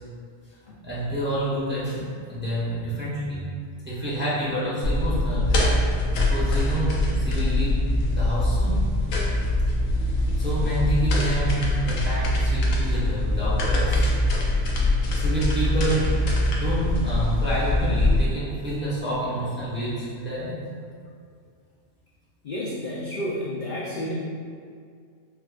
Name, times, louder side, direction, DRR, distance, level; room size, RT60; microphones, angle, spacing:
voice 1, 0.8-3.4 3.8-5.5 5.8-7.8 8.1-9.0 10.3-14.0 15.1-20.6, right 1 dB, 15° right, -9 dB, 0.5 m, -28 dB
sound 1, 4.8-18.2, left 1 dB, 90° left, 1.0 m, -23 dB
voice 2, 22.4-24.1, left 1 dB, 65° left, -6 dB, 0.4 m, -31 dB
4.6 x 2.3 x 2.3 m, 2.2 s
omnidirectional pair, 1.3 m